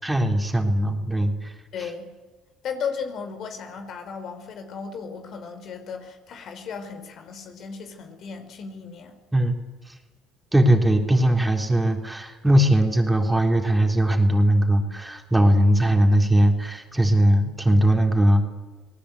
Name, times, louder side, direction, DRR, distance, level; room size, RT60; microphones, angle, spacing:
voice 1, 0.0-1.5 9.3-9.5 9.9-10.0 10.5-18.5, right 1 dB, 10° right, 3 dB, 3.7 m, -20 dB
voice 2, 1.7-2.1 2.6-9.2, left 6 dB, 60° left, 7 dB, 4.2 m, -35 dB
28.0 x 18.5 x 8.3 m, 1.3 s
supercardioid pair, 75°, 0 cm